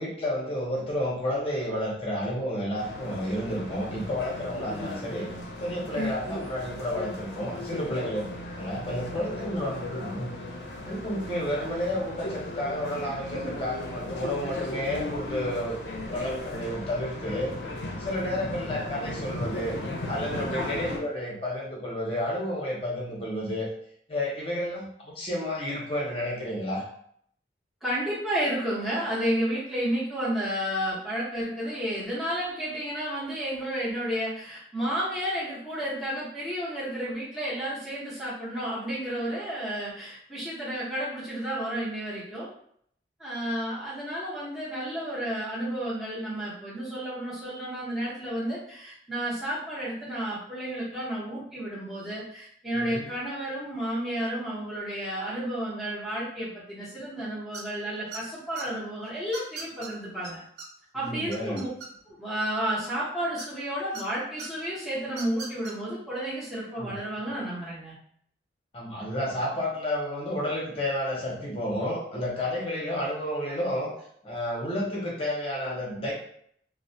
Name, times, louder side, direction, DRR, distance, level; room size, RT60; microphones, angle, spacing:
voice 1, 0.0-5.3 5.6-8.3 8.6-10.3 10.8-15.8 16.1-17.5 18.0-19.8 20.1-23.7 24.1-26.8 52.7-53.1 61.0-61.6 66.8-67.0 68.7-73.9 74.2-76.1, left 1 dB, 30° left, -3 dB, 0.7 m, -31 dB
sound 1, 2.8-21.0, left 1 dB, 70° left, 0.5 m, -36 dB
voice 2, 20.4-20.7 27.8-42.5 43.2-60.4 60.9-61.7 62.1-67.9, right 1 dB, ahead, -11 dB, 0.8 m, -31 dB
sound 2, 57.5-57.8 58.1-58.6 59.3-59.9 60.2-60.3 60.6-60.7 61.0-62.2 63.4-64.0 64.4-64.5 65.1-65.7, right 4 dB, 65° right, 0.5 m, -39 dB
2.3 x 2.0 x 2.6 m, 0.65 s
head